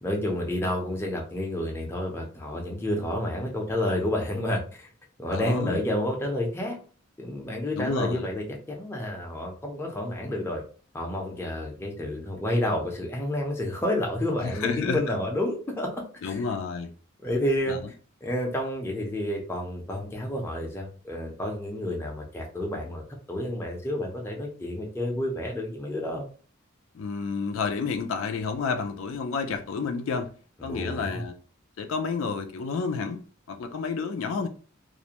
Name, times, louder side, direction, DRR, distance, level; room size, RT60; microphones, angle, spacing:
voice 1, 0.0-4.9 5.2-6.8 7.2-10.6 10.9-16.4 17.2-17.8 18.2-23.0 23.3-26.3 30.6-31.2, left 1 dB, 10° left, 0.5 m, -30 dB
voice 2, 5.3-5.8 7.7-8.3 14.4-15.0 16.2-16.9 17.7-17.9 26.9-30.3 30.6-31.3 31.8-34.5, left 5 dB, 80° left, 0.4 m, -30 dB
2.4 x 2.1 x 2.8 m
head